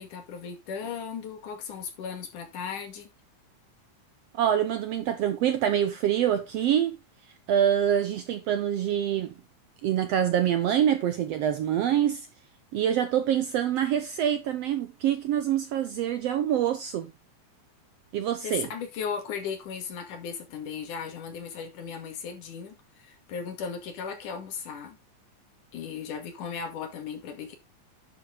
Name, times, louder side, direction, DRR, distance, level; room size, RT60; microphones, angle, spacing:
voice 1, 0.0-3.1 18.4-25.0 25.7-27.6, left 6 dB, 75° left, 3.6 m, -36 dB
voice 2, 4.3-7.0 7.5-9.3 9.8-12.3 12.7-17.1 18.1-18.7, right 10 dB, 75° right, 1.5 m, -25 dB
10.0 x 6.8 x 3.4 m
omnidirectional pair, 3.7 m